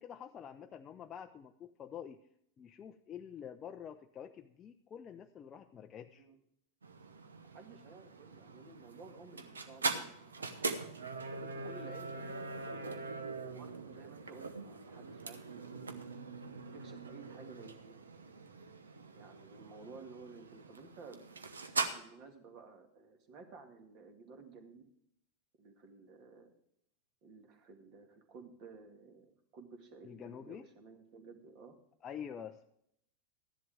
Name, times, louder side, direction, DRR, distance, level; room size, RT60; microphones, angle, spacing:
voice 1, 0.0-2.2 2.6-6.2 30.0-30.7 32.0-32.7, left 8 dB, 25° left, 5 dB, 0.5 m, -47 dB
sound 1, 6.8-21.9, right 4 dB, 70° right, 1.0 m, -42 dB
voice 2, 7.5-10.6 11.4-12.9 13.4-16.0 16.4-18.0 19.1-21.5 21.9-24.9 25.6-26.5 27.2-31.8, right 4 dB, 40° right, 6 dB, 2.0 m, -54 dB
14.0 x 11.0 x 3.5 m, 0.72 s
figure-of-eight pair, 90°, 0 cm